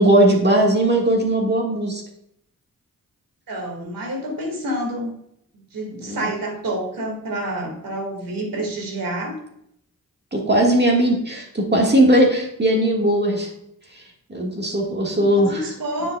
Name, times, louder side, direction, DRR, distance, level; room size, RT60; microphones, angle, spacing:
voice 1, 0.0-2.0 6.0-6.3 10.3-13.5 14.3-15.6, right 1 dB, 30° right, -1 dB, 1.7 m, -18 dB
voice 2, 3.5-5.1 5.5-9.3 15.1-16.2, right 1 dB, 75° right, 2 dB, 2.0 m, -28 dB
9.6 x 5.2 x 2.3 m, 0.74 s
cardioid pair, 55°, 34 cm